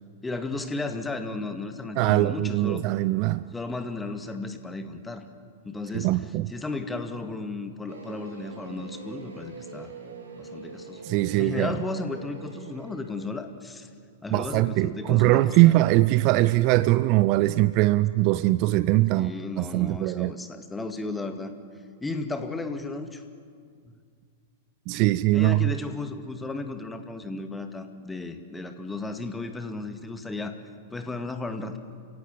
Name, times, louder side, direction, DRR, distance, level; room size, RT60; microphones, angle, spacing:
voice 1, 0.2-2.8 3.5-5.2 5.6-6.1 6.5-9.9 10.4-11.0 11.4-13.9 14.2-15.8 19.1-21.5 22.0-23.2 25.3-30.6 30.9-31.8, left 3 dB, 10° left, 2.1 m, -34 dB
voice 2, 2.0-3.4 5.9-6.5 11.0-11.7 14.3-20.3 24.9-25.7, right 18 dB, 40° right, 0.6 m, -22 dB
sound 1, 7.9-13.3, right 4 dB, 70° right, 4.1 m, -43 dB
29.0 x 17.0 x 9.2 m
figure-of-eight pair, 95°, 0 cm